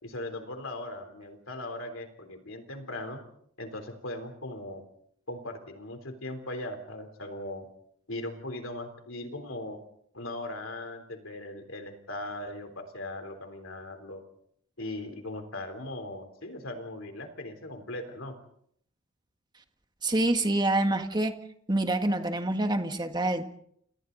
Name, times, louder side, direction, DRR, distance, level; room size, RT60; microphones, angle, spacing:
voice 1, 0.0-3.2 3.6-4.8 5.3-7.7 8.1-9.8 10.1-14.2 14.8-18.4, left 1 dB, 65° left, 6 dB, 3.6 m, -39 dB
voice 2, 20.0-21.3 21.7-23.4, right 2 dB, 20° right, 6 dB, 1.7 m, -26 dB
29.0 x 29.0 x 4.0 m, 0.70 s
head